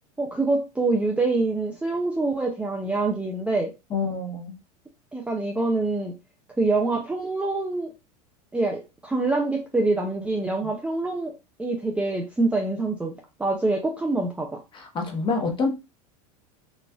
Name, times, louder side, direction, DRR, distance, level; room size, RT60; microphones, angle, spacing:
voice 1, 0.2-3.7 5.1-6.1 6.6-7.9 8.5-11.3 11.6-13.1 13.4-14.6, right 3 dB, 5° right, 0.4 m, -25 dB
voice 2, 3.9-4.6 10.6-10.7 14.7-15.7, left 4 dB, 25° left, 1.0 m, -27 dB
4.0 x 2.4 x 2.3 m
hypercardioid pair, 110°, 19 cm